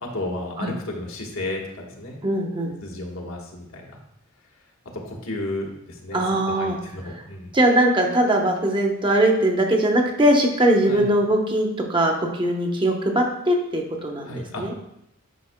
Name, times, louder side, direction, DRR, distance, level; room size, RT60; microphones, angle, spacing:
voice 1, 0.0-2.2 2.8-4.0 4.9-6.2 6.6-7.5 10.9-11.1 14.2-14.8, left 1 dB, 75° left, 0 dB, 1.3 m, -33 dB
voice 2, 2.2-2.8 6.1-6.8 7.1-7.2 7.5-14.7, right 1 dB, 25° right, 2 dB, 0.9 m, -21 dB
9.2 x 5.4 x 2.2 m, 0.80 s
head